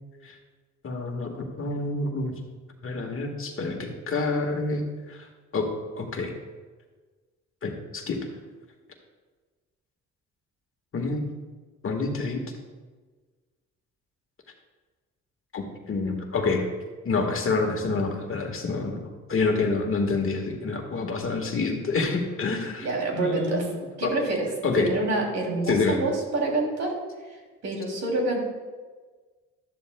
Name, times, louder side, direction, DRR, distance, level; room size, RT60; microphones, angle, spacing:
voice 1, 0.8-2.3 2.8-5.3 5.5-5.6 6.0-6.3 7.6-8.2 10.9-11.3 11.8-12.4 15.5-16.6 17.0-22.9 23.1-23.7 24.0-24.1 24.6-24.9 25.7-26.0, left 3 dB, 45° left, 2 dB, 1.6 m, -27 dB
voice 2, 22.8-23.7 24.0-24.5 24.8-26.9 27.6-28.4, right 2 dB, 60° right, 0 dB, 2.9 m, -27 dB
12.5 x 11.0 x 2.2 m, 1.4 s
cardioid pair, 90°, 30 cm